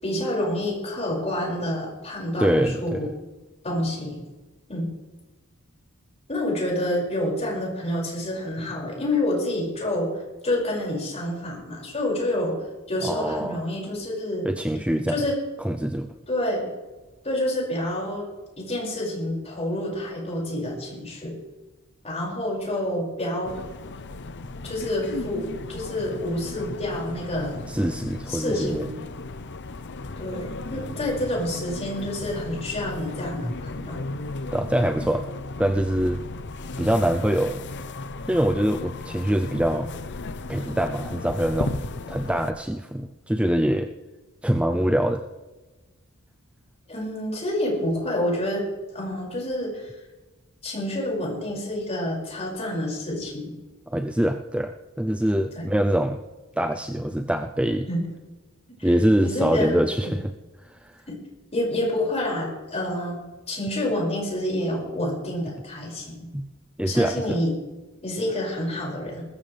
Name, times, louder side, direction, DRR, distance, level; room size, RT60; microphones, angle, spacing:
voice 1, 0.0-3.1 3.6-4.2 4.7-4.9 6.3-10.1 10.4-12.6 12.9-14.5 15.1-15.3 16.3-16.7 17.2-18.3 18.6-21.4 22.0-23.6 24.6-25.4 25.7-27.6 28.3-28.9 30.2-34.0 46.9-48.6 48.9-49.9 50.6-53.5 55.5-55.6 57.9-58.0 58.8-58.9 59.2-60.1 61.1-61.2 61.5-63.2 63.5-66.3 66.8-67.5 68.0-69.3, left 1 dB, 30° left, -3 dB, 6.1 m, -28 dB
voice 2, 2.4-3.1 13.0-13.6 14.4-15.3 15.6-16.1 27.7-28.8 33.4-33.5 34.5-35.3 35.6-36.2 36.8-37.6 38.3-39.9 40.5-43.9 44.4-45.2 53.9-56.2 56.6-57.9 58.8-60.3 60.6-61.0 66.3-66.5 66.8-67.4, right 1 dB, 5° right, 5 dB, 0.5 m, -24 dB
sound 1, 23.4-42.5, left 3 dB, 55° left, 0.8 m, -35 dB
20.5 x 14.0 x 3.4 m, 1.2 s
head